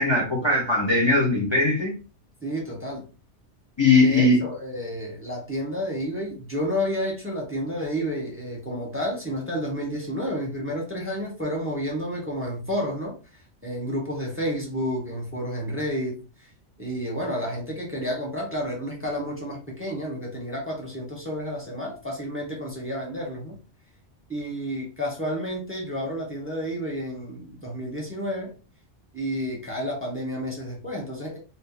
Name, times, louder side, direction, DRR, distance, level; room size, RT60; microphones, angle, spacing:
voice 1, 0.0-1.9 3.8-4.4, left 2 dB, 25° left, 0.8 m, -20 dB
voice 2, 2.4-3.1 3.9-16.5 16.8-23.5 24.3-28.5 29.1-31.4, equal, 10° right, 1.0 m, -30 dB
2.7 x 2.7 x 3.8 m
omnidirectional pair, 1.2 m